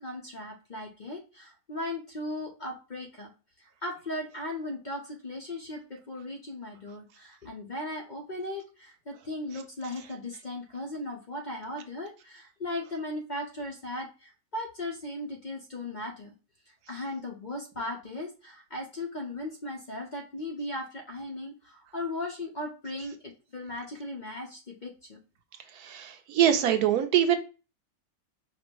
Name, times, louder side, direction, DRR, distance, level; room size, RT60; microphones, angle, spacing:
voice 1, 0.0-3.3 3.8-16.3 16.9-25.2, left 1 dB, 40° left, 0 dB, 0.7 m, -37 dB
voice 2, 25.8-27.4, right 10 dB, 85° right, 7 dB, 1.2 m, -23 dB
5.1 x 2.0 x 4.5 m, 0.32 s
omnidirectional pair, 1.6 m